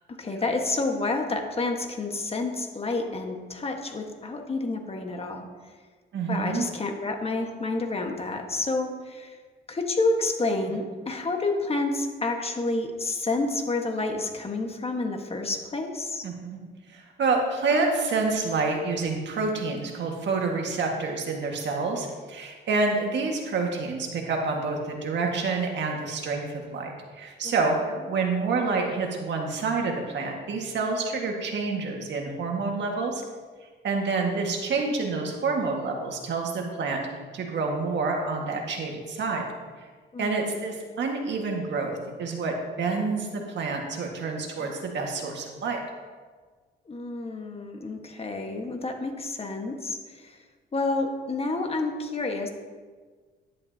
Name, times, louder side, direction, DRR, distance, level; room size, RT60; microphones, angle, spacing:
voice 1, 0.2-5.5 6.3-9.4 9.7-16.3 27.4-27.5 40.1-40.7 46.9-50.4 50.7-52.5, left 2 dB, 30° left, 3 dB, 1.5 m, -29 dB
voice 2, 6.1-6.7 16.2-16.6 16.9-33.2 33.8-37.0 37.3-39.5 40.2-45.8, right 4 dB, 65° right, 1 dB, 1.8 m, -28 dB
11.0 x 10.5 x 2.9 m, 1.5 s
cardioid pair, 90°, 20 cm